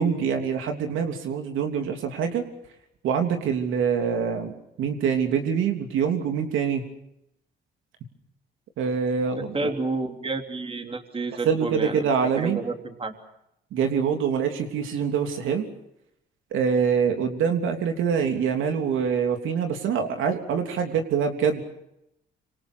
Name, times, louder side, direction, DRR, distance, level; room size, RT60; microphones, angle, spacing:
voice 1, 0.0-2.5 3.0-6.8 8.8-9.7 11.4-12.6 13.7-15.6 16.5-21.6, right 7 dB, 85° right, 5 dB, 3.2 m, -25 dB
voice 2, 9.4-13.1, right 3 dB, 30° right, 5 dB, 3.3 m, -30 dB
26.5 x 26.0 x 6.4 m, 0.83 s
cardioid pair, 90°, 20 cm